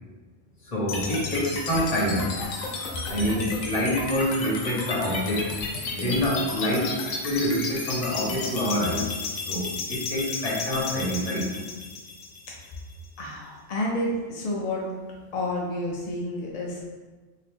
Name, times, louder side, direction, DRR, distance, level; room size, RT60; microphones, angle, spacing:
voice 1, 0.6-2.3 3.1-5.5 5.9-9.1 9.5-11.5, equal, 35° left, -5 dB, 0.9 m, -26 dB
sound 1, 0.9-12.9, left 3 dB, 90° left, 1.0 m, -33 dB
voice 2, 13.2-14.9 15.3-16.9, left 1 dB, 60° left, -3 dB, 0.4 m, -30 dB
2.9 x 2.8 x 3.4 m, 1.3 s
omnidirectional pair, 1.3 m